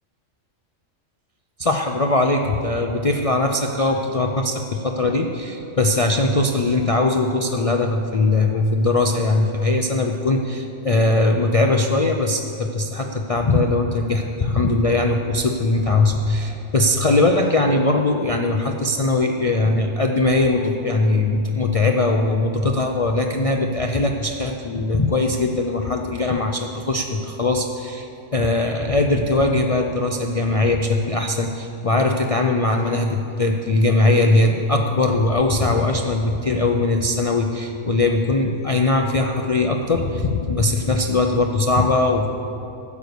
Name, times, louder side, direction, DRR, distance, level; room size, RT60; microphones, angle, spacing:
voice 1, 1.6-42.3, left 2 dB, 60° left, 3 dB, 0.3 m, -20 dB
12.0 x 8.0 x 6.8 m, 2.9 s
omnidirectional pair, 1.4 m